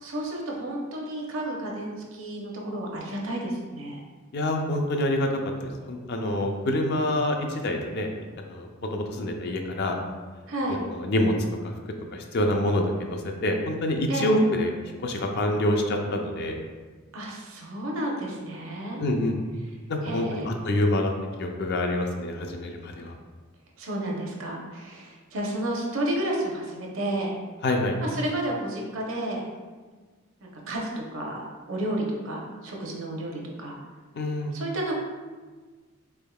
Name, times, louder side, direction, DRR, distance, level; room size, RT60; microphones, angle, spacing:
voice 1, 0.0-4.0 10.5-10.8 14.1-14.4 17.1-19.1 20.0-20.5 23.8-27.3 28.0-29.5 30.4-33.8 34.5-34.9, right 1 dB, 65° right, -1 dB, 0.7 m, -31 dB
voice 2, 4.3-5.3 5.6-8.1 8.4-10.0 10.7-11.3 12.1-14.7 15.0-16.5 19.0-19.4 19.9-21.1 21.4-23.1 27.6-27.9 34.2-34.5, left 1 dB, 50° left, 3 dB, 0.4 m, -26 dB
3.6 x 3.5 x 2.3 m, 1.4 s
head